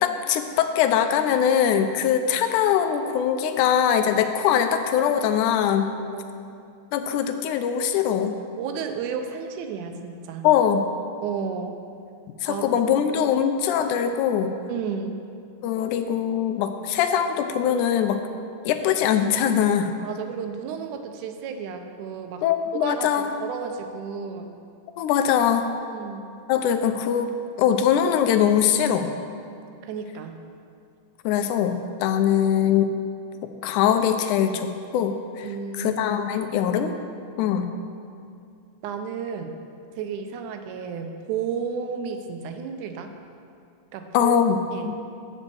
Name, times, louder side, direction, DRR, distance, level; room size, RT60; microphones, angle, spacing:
voice 1, 0.0-5.9 6.9-8.4 10.4-10.8 12.4-14.6 15.6-18.2 18.7-19.9 22.4-23.3 25.0-25.7 26.5-27.3 27.6-29.1 31.3-32.9 33.6-35.5 35.8-37.0 37.4-37.7 44.1-44.6 44.9-45.0, left 9 dB, 85° left, 8 dB, 2.0 m, -22 dB
voice 2, 6.1-6.4 8.5-10.4 11.2-11.8 12.5-12.9 14.7-15.2 20.0-22.4 22.7-24.5 25.9-26.2 29.8-30.3 35.4-36.0 38.8-39.5 40.0-43.1 43.9-44.4 44.7-44.9, right 6 dB, 85° right, 6 dB, 2.1 m, -32 dB
8.2 x 5.3 x 6.9 m, 2.4 s
omnidirectional pair, 3.5 m